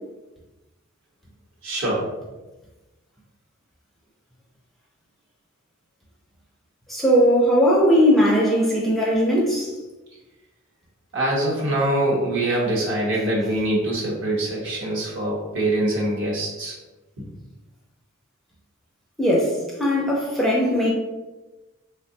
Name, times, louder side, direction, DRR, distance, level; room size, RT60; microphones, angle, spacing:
voice 1, 1.6-2.0 11.1-16.7 17.2-17.3, right 1 dB, 65° right, 0.9 m, -24 dB
voice 2, 6.9-9.7 19.2-20.9, equal, ahead, 0.4 m, -19 dB
3.4 x 2.1 x 2.7 m
head